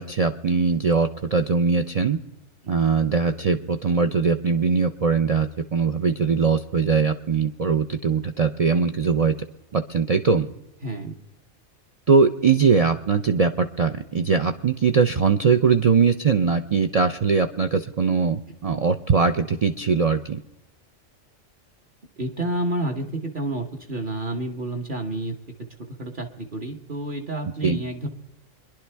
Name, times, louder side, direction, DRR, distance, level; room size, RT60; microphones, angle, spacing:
voice 1, 0.0-2.2 2.7-9.3 9.7-10.5 12.1-20.4 27.6-27.8, right 5 dB, 60° right, 6 dB, 0.4 m, -21 dB
voice 2, 10.8-11.2 22.2-25.4 26.0-28.1, right 1 dB, 40° right, 1 dB, 1.3 m, -29 dB
24.0 x 11.0 x 3.4 m, 0.91 s
omnidirectional pair, 1.3 m